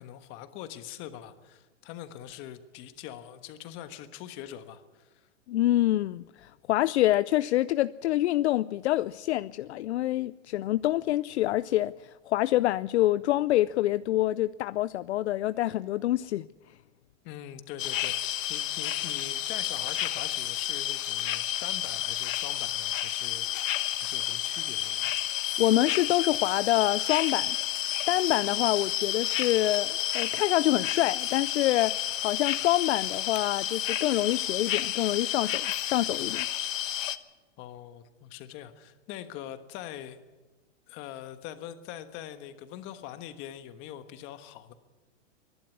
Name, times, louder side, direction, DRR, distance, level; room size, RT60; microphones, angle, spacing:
voice 1, 0.0-5.3 17.2-25.2 37.6-40.2 40.9-44.7, left 11 dB, 30° left, 10 dB, 1.4 m, -43 dB
voice 2, 5.5-16.5 25.6-27.6 28.1-31.9 32.2-36.5, left 15 dB, 60° left, 15 dB, 0.5 m, -26 dB
sound 1, 17.8-37.2, left 11 dB, 80° left, 1.2 m, -31 dB
23.5 x 11.5 x 9.7 m, 1.2 s
hypercardioid pair, 155°, 38 cm